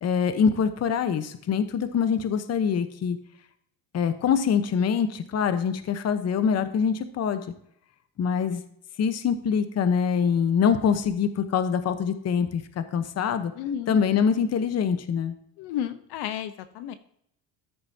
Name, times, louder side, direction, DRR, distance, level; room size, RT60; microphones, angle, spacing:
voice 1, 0.0-3.2 3.9-7.4 8.2-8.6 9.0-13.5 13.9-15.3, left 7 dB, 35° left, 10 dB, 1.0 m, -24 dB
voice 2, 13.5-14.0 15.6-16.9, left 9 dB, 65° left, 11 dB, 0.9 m, -32 dB
13.5 x 6.7 x 2.8 m, 0.70 s
supercardioid pair, 105°, 43 cm